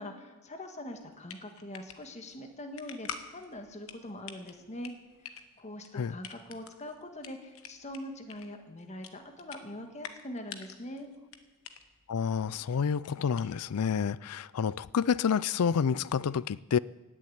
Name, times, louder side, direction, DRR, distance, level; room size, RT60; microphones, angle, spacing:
voice 1, 0.0-4.9 5.6-11.1, left 1 dB, 30° left, 5 dB, 1.6 m, -43 dB
sound 1, 1.0-13.9, left 7 dB, 65° left, 1.2 m, -48 dB
voice 2, 12.1-16.8, left 6 dB, 90° left, 21 dB, 0.4 m, -29 dB
16.0 x 7.5 x 9.9 m, 1.3 s
head